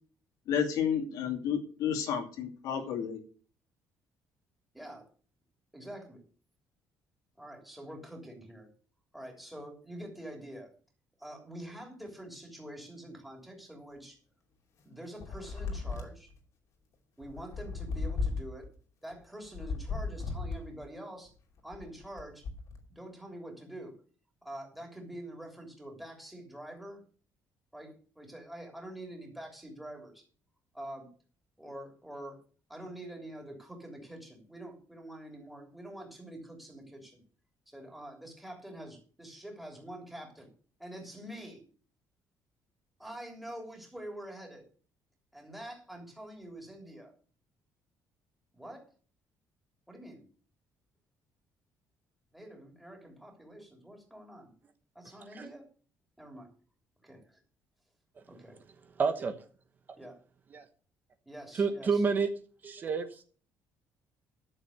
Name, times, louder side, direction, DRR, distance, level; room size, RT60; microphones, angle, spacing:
voice 1, 0.5-3.2, left 8 dB, 70° left, 4 dB, 2.5 m, -31 dB
voice 2, 4.7-5.1 5.7-6.2 7.4-8.7 9.1-10.7 11.2-14.2 14.8-16.3 17.2-18.7 19.0-21.3 21.6-22.4 22.9-23.9 24.4-27.0 27.7-30.2 30.7-31.1 31.6-32.4 32.7-37.2 37.7-40.5 40.8-41.6 43.0-44.6 45.3-47.1 48.5-48.9 49.9-50.3 52.3-54.5 54.9-55.6 56.2-56.5 57.0-57.4 58.3-58.6 60.0-60.2 61.2-62.0, right 1 dB, ahead, 1 dB, 3.3 m, -46 dB
sound 1, 15.2-16.4 17.2-18.7 19.4-20.9 21.6-22.8, left 4 dB, 55° left, 2.6 m, -35 dB
voice 3, 59.0-59.3 60.5-60.6 61.5-62.3 62.6-63.2, right 5 dB, 30° right, 8 dB, 1.0 m, -29 dB
12.5 x 7.0 x 6.5 m, 0.42 s
cardioid pair, 170°, 6 cm